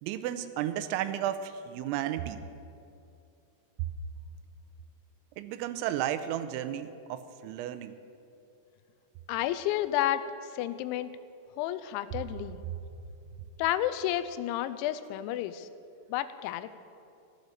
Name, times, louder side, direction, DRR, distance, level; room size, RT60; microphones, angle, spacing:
voice 1, 0.0-2.4 3.8-3.9 5.4-8.0, right 11 dB, 90° right, 11 dB, 3.0 m, -33 dB
voice 2, 9.3-10.2 10.5-11.1 11.6-12.6 13.6-15.7 16.1-16.8, left 13 dB, 90° left, 13 dB, 3.0 m, -31 dB
15.0 x 12.0 x 6.6 m, 2.6 s
omnidirectional pair, 5.3 m